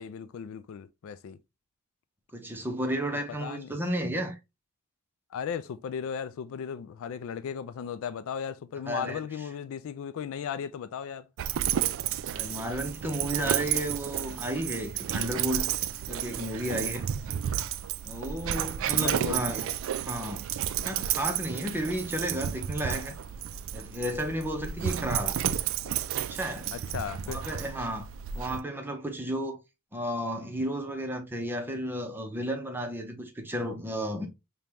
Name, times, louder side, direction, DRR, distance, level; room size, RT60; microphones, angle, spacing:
voice 1, 0.0-1.4 3.4-3.7 5.3-11.3 18.9-19.4 26.7-27.4, left 7 dB, 65° left, 0.3 m, -36 dB
voice 2, 2.3-4.4 8.9-9.3 12.3-15.7 16.1-17.1 18.0-20.4 20.8-23.2 23.7-25.4 26.2-26.7 27.3-28.1 28.3-29.6 29.9-34.3, equal, 10° right, 0.7 m, -33 dB
Dog, 11.4-28.6, right 10 dB, 65° right, 0.3 m, -32 dB
5.2 x 2.2 x 2.9 m
head